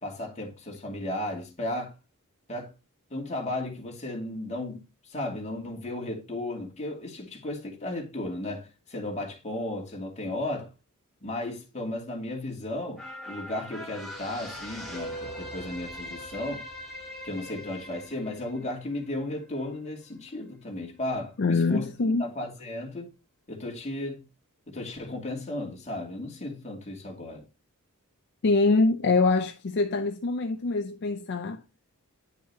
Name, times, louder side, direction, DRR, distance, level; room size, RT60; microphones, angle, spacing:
voice 1, 0.0-1.9 2.5-2.7 3.1-10.7 11.2-16.6 17.2-21.9 22.2-23.1 23.5-24.2 24.7-27.4, left 1 dB, 30° left, 2.4 m, -35 dB
sound 1, 13.0-19.6 20.0-20.1, equal, ahead, 2.5 m, -41 dB
voice 2, 21.4-22.3 28.4-31.6, left 3 dB, 50° left, 0.6 m, -24 dB
9.7 x 6.0 x 2.8 m
head